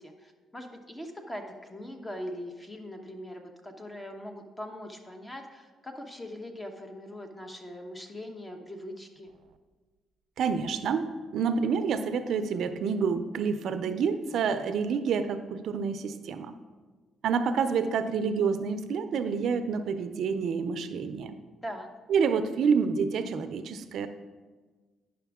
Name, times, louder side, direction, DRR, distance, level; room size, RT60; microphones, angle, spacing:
voice 1, 0.0-9.3 21.6-21.9, left 1 dB, 15° left, 4 dB, 1.1 m, -41 dB
voice 2, 10.4-16.5 17.2-21.3 22.1-24.1, right 6 dB, 70° right, 10 dB, 0.5 m, -28 dB
10.0 x 6.1 x 3.6 m, 1.3 s
cardioid pair, 90°, 0 cm